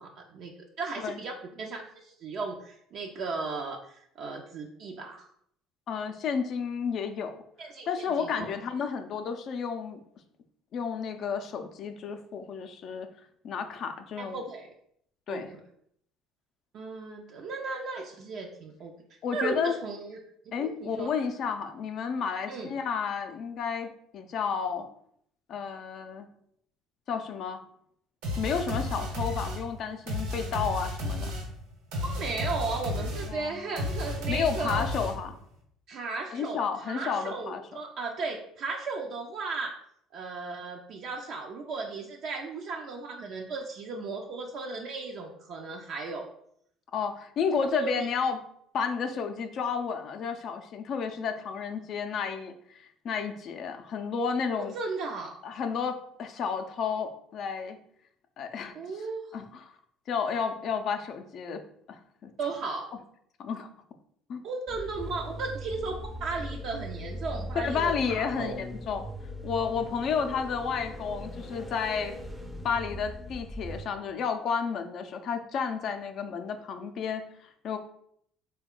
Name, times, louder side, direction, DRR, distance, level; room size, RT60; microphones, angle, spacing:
voice 1, 0.0-5.3 7.6-8.5 14.2-14.7 15.3-15.4 16.7-18.9 19.3-20.2 20.4-21.1 22.5-22.7 32.0-34.9 35.9-39.7 40.1-46.2 47.7-48.1 54.6-55.4 58.7-59.2 62.4-62.9 64.4-68.6, right 4 dB, 60° right, 0 dB, 0.4 m, -36 dB
voice 2, 5.9-7.4 7.9-10.0 10.7-13.1 13.4-14.4 15.3-15.5 19.2-19.8 20.5-24.9 25.5-26.3 27.1-27.6 28.4-31.3 33.3-33.6 34.3-35.4 36.3-37.6 46.9-48.4 48.7-54.7 55.4-57.8 58.4-58.8 59.3-59.6 60.1-61.6 61.9-62.3 63.4-63.7 64.3-64.4 67.6-69.1 69.4-72.1 72.6-77.8, left 6 dB, 55° left, 6 dB, 0.4 m, -31 dB
sound 1, 28.2-35.4, left 1 dB, 80° right, 1.1 m, -33 dB
sound 2, 64.7-73.9, equal, 5° right, 0.5 m, -39 dB
3.5 x 2.2 x 3.7 m, 0.68 s
supercardioid pair, 80°, 0 cm